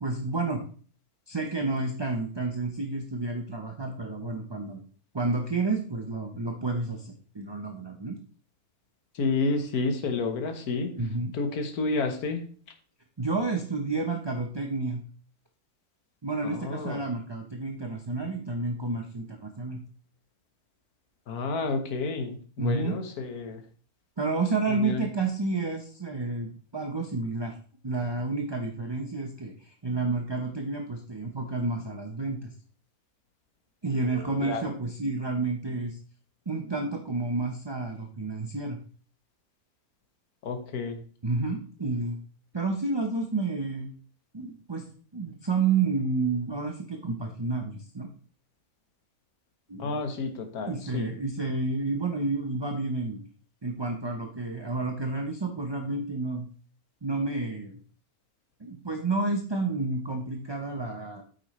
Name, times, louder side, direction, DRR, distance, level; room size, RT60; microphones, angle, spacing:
voice 1, 0.0-0.6 1.3-4.8 5.1-8.2 11.0-11.3 13.2-15.0 16.2-19.8 22.6-23.0 24.2-27.6 27.8-32.5 33.8-36.0 36.5-38.8 41.2-42.2 42.5-43.9 44.3-44.9 45.1-48.1 49.7-50.0 50.7-53.2 53.6-56.5 57.0-57.8 58.6-61.2, right 3 dB, 25° right, 3 dB, 0.7 m, -30 dB
voice 2, 9.2-10.9 11.3-12.4 16.4-17.0 21.3-23.6 24.7-25.0 34.4-34.6 40.4-41.0 49.8-51.1, left 3 dB, 80° left, 6 dB, 1.7 m, -30 dB
9.2 x 8.4 x 3.2 m, 0.42 s
omnidirectional pair, 1.6 m